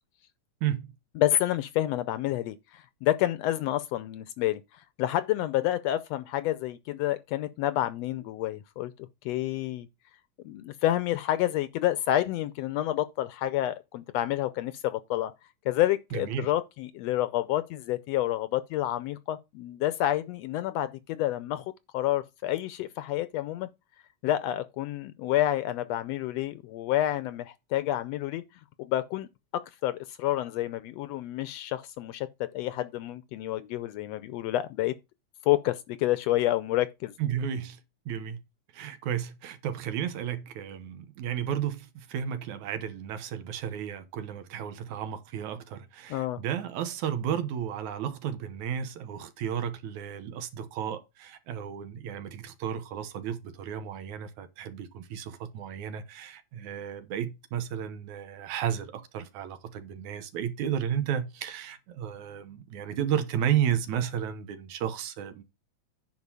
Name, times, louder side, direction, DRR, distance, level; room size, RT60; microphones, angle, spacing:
voice 1, 1.2-8.9 9.2-9.9 10.4-15.3 15.6-23.7 24.2-28.4 28.8-29.3 29.5-32.3 32.5-34.9 35.4-37.1 46.1-46.4, left 13 dB, 75° left, 1.6 m, -29 dB
voice 2, 16.1-16.5 37.2-37.8 38.1-38.4 38.7-65.4, right 9 dB, 85° right, 2.5 m, -33 dB
9.6 x 4.7 x 5.4 m
omnidirectional pair, 3.3 m